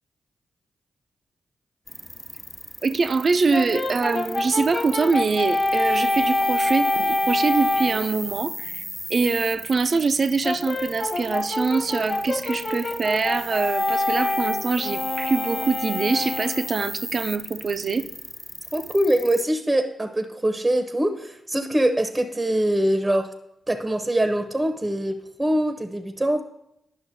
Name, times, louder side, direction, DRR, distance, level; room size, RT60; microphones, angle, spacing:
sound 1, 1.9-19.4, equal, 5° left, 0.4 m, -37 dB
voice 1, 2.8-8.8 9.1-18.1, right 4 dB, 55° right, 0.5 m, -24 dB
Brass instrument, 3.5-8.1 10.4-16.8, left 2 dB, 45° left, 0.9 m, -26 dB
voice 2, 18.7-23.3 23.7-26.4, right 1 dB, 20° right, 0.7 m, -23 dB
10.5 x 5.7 x 2.6 m
supercardioid pair, 40°, 0 cm